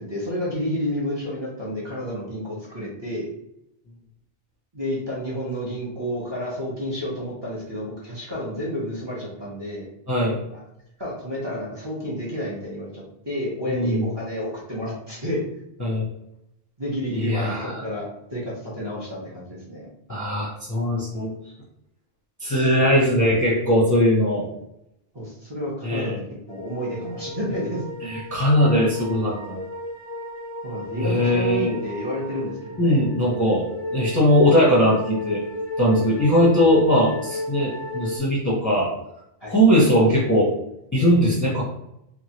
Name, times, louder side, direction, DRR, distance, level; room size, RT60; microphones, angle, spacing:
voice 1, 0.0-3.3 4.7-9.9 10.5-10.6 11.0-15.4 16.8-17.6 17.8-19.9 25.1-26.2 26.5-27.8 30.6-33.0 35.8-36.1 39.4-39.5, equal, 30° right, -6 dB, 0.7 m, -30 dB
voice 2, 10.1-10.4 13.7-14.1 15.8-16.1 17.1-17.8 20.1-21.3 22.4-24.5 25.8-26.2 28.0-29.6 31.0-31.8 32.8-33.6 33.9-35.4 35.8-38.9 39.5-40.5 40.9-41.6, equal, 20° left, -5 dB, 0.6 m, -20 dB
sound 1, 26.5-38.2, left 1 dB, 10° right, 1.1 m, -34 dB
3.0 x 2.3 x 2.8 m, 0.81 s
omnidirectional pair, 1.0 m